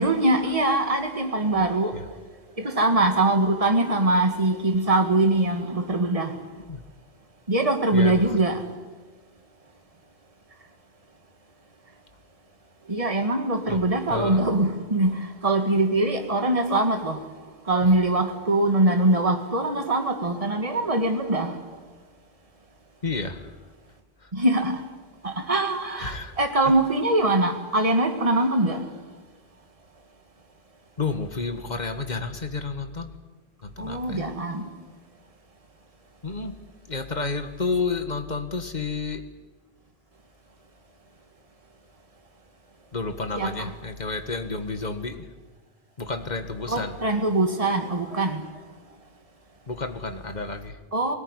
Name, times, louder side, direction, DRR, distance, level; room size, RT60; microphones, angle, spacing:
voice 1, 0.0-1.9 2.6-6.4 7.5-8.6 12.9-17.2 17.7-21.6 24.3-24.8 25.2-28.8 33.8-34.7 43.4-43.7 46.7-48.4 50.9-51.1, right 2 dB, 35° right, 5 dB, 2.0 m, -23 dB
voice 2, 7.9-8.2 13.7-13.8 14.1-14.4 23.0-23.4 26.0-26.3 31.0-33.1 33.6-34.3 36.2-36.5 36.9-39.2 42.9-45.3 46.0-46.9 49.7-50.8, left 4 dB, 45° left, 8 dB, 1.8 m, -30 dB
20.0 x 18.5 x 9.9 m, 1.3 s
omnidirectional pair, 1.1 m